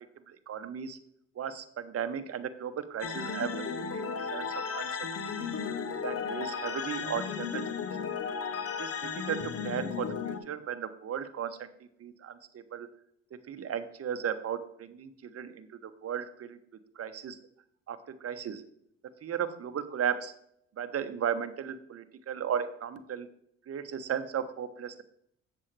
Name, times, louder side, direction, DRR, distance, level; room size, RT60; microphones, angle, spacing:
voice 1, 0.3-1.0 1.3-4.0 4.3-4.9 5.2-5.5 6.0-7.6 8.8-12.9 13.5-16.6 17.0-17.4 17.9-18.6 19.2-20.3 20.8-23.3 23.7-25.0, right 8 dB, 40° right, 10 dB, 0.9 m, -36 dB
sound 1, 3.0-10.4, left 6 dB, 40° left, 0.9 m, -35 dB
7.7 x 7.3 x 3.3 m, 0.70 s
hypercardioid pair, 60°, 36 cm